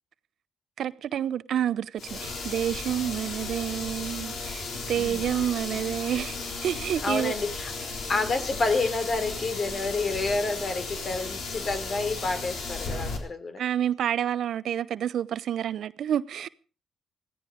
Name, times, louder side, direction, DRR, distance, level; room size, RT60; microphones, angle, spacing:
voice 1, 0.8-7.3 13.6-16.5, right 10 dB, 70° right, 0.7 m, -29 dB
sound 1, 2.0-13.2, left 3 dB, 70° left, 4.0 m, -35 dB
voice 2, 5.0-5.3 7.0-7.7 8.1-13.6, left 3 dB, 50° left, 3.3 m, -29 dB
16.0 x 15.5 x 5.1 m
supercardioid pair, 50°, 0 cm